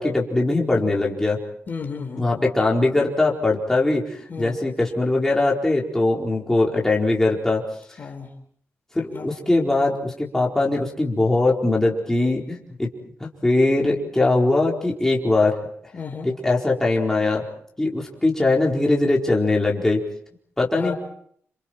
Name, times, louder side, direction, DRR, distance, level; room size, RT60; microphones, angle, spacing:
voice 1, 0.0-1.4 2.2-7.6 8.9-12.9 13.2-15.5 16.2-17.4 17.8-20.0 20.6-20.9, left 2 dB, 10° left, -3 dB, 4.5 m, -21 dB
voice 2, 1.7-2.4 4.3-4.6 8.0-8.3 9.1-9.3 15.9-16.3 20.7-20.9, left 5 dB, 40° left, 4 dB, 4.1 m, -33 dB
29.5 x 27.5 x 4.6 m, 0.63 s
wide cardioid pair, 130°, 5 cm